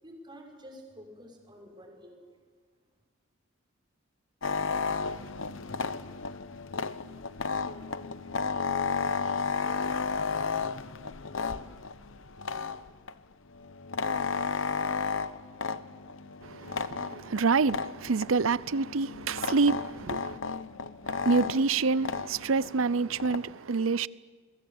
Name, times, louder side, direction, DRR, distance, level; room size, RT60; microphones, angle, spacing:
voice 1, 0.0-2.4, equal, 20° right, 5.9 m, -49 dB
sound 1, 4.4-13.1 13.5-23.5, left 5 dB, 65° left, 0.9 m, -33 dB
voice 2, 16.4-20.4 21.0-24.1, right 4 dB, 75° right, 0.7 m, -27 dB
29.5 x 22.5 x 7.3 m
head